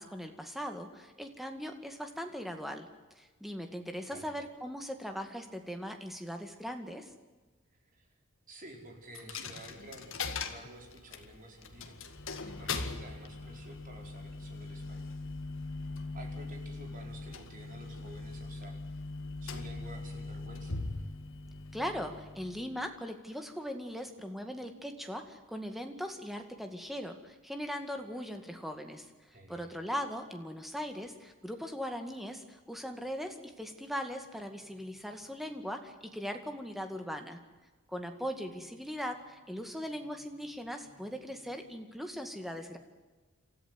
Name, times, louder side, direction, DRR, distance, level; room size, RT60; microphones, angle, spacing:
voice 1, 0.0-2.9 3.2-7.1 21.7-29.1 29.5-37.4 37.9-42.8, equal, ahead, 5 dB, 2.1 m, -39 dB
voice 2, 4.0-4.3 7.7-8.2 8.5-12.1 12.4-15.2 16.1-19.0 19.4-20.8 29.3-29.7, right 1 dB, 40° right, 2 dB, 4.8 m, -51 dB
Coin (dropping), 9.1-22.9, left 3 dB, 60° left, 2.0 m, -41 dB
28.0 x 14.0 x 9.5 m, 1.3 s
head